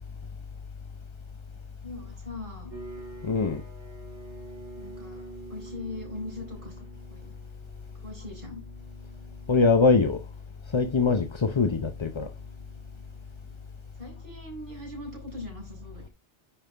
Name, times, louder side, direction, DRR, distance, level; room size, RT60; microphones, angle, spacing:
voice 1, 1.8-2.7 4.7-5.2 5.5-7.3 7.9-8.6 13.9-16.1, left 2 dB, 45° right, 4.4 m, -41 dB
sound 1, 2.7-13.8, right 3 dB, 85° right, 3.3 m, -48 dB
voice 2, 3.2-3.6 9.5-10.2 10.7-12.3, left 4 dB, 30° left, 0.6 m, -22 dB
10.0 x 5.4 x 3.3 m
omnidirectional pair, 1.2 m